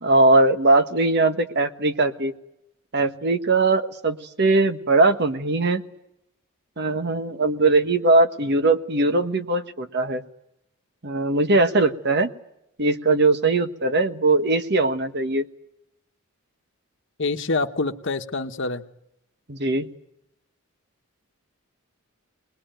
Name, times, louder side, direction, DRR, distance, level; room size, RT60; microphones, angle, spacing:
voice 1, 0.0-2.3 2.9-5.8 6.8-10.2 11.0-12.3 12.8-15.4 19.5-19.9, right 2 dB, 50° right, 10 dB, 1.2 m, -20 dB
voice 2, 17.2-18.8, left 3 dB, 55° left, 7 dB, 1.2 m, -26 dB
23.5 x 20.5 x 9.1 m, 0.81 s
head